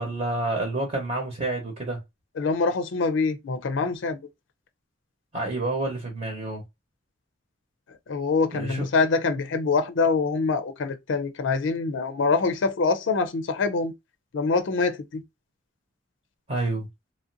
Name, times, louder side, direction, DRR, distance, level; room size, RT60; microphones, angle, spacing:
voice 1, 0.0-2.0 5.3-6.6 8.5-8.9 16.5-16.9, right 2 dB, 40° right, 0.9 m, -28 dB
voice 2, 2.4-4.2 8.1-13.9 14.3-15.2, left 4 dB, 80° left, 0.5 m, -25 dB
3.0 x 2.5 x 2.7 m
head